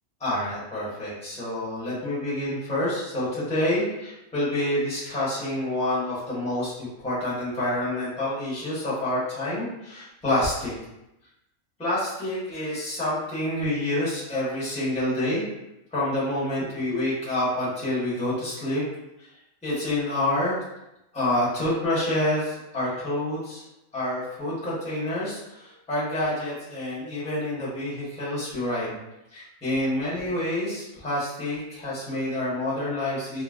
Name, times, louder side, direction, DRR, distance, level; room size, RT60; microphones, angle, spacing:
voice 1, 0.2-10.7 11.8-15.4 15.9-18.8 19.2-19.3 19.6-20.6 21.1-23.6 23.9-28.9 29.3-33.4, left 1 dB, 5° left, -10 dB, 1.0 m, -28 dB
3.8 x 2.1 x 2.4 m, 0.90 s
omnidirectional pair, 1.5 m